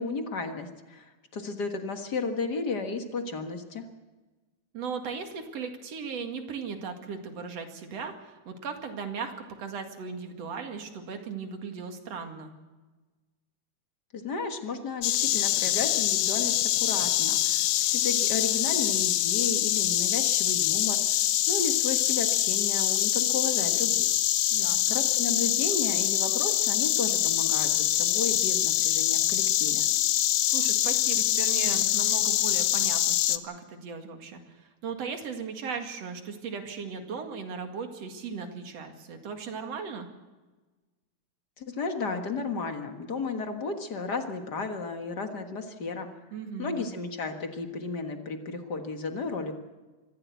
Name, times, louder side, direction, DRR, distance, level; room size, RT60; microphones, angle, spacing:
voice 1, 0.0-3.8 14.1-24.2 24.6-29.9 41.6-46.1 46.6-49.5, left 4 dB, 40° left, 6 dB, 1.7 m, -33 dB
voice 2, 4.7-12.5 24.5-25.0 30.5-40.1 46.3-46.8, right 5 dB, 60° right, 5 dB, 3.0 m, -37 dB
Insect, 15.0-33.4, left 13 dB, 75° left, 1.9 m, -25 dB
24.5 x 14.5 x 8.3 m, 1.2 s
omnidirectional pair, 3.4 m